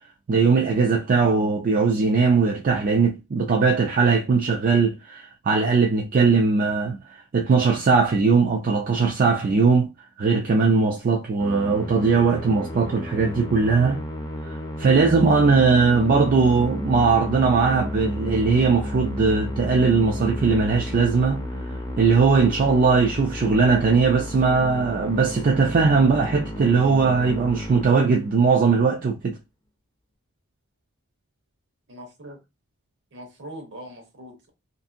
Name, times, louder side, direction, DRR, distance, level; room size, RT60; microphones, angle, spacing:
voice 1, 0.3-7.0 7.3-9.9 10.2-14.0 14.8-21.4 22.0-29.4, right 4 dB, 40° right, 0.4 m, -19 dB
Musical instrument, 11.4-28.5, left 1 dB, 15° left, 0.5 m, -32 dB
voice 2, 31.9-32.4 33.1-34.5, right 1 dB, 60° right, 0.9 m, -41 dB
2.6 x 2.5 x 2.5 m
head